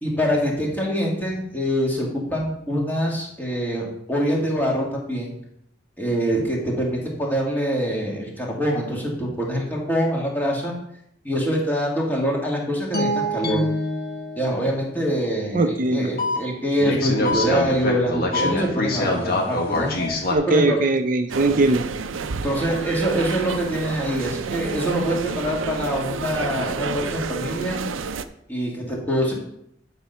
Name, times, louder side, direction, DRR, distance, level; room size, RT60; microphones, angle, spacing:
voice 1, 0.0-5.3 6.0-10.7 11.2-13.6 14.4-19.9 20.5-20.8 22.3-27.8 28.5-29.3, equal, 10° left, -3 dB, 2.0 m, -24 dB
sound 1, 12.9-14.9 16.2-16.4 16.8-20.4, left 1 dB, 50° left, 1.5 m, -24 dB
voice 2, 15.5-16.1 20.3-21.8, right 2 dB, 45° right, 6 dB, 0.5 m, -20 dB
sound 2, 21.3-28.2, right 5 dB, 90° right, 0.5 m, -29 dB
10.0 x 4.1 x 5.6 m, 0.75 s
head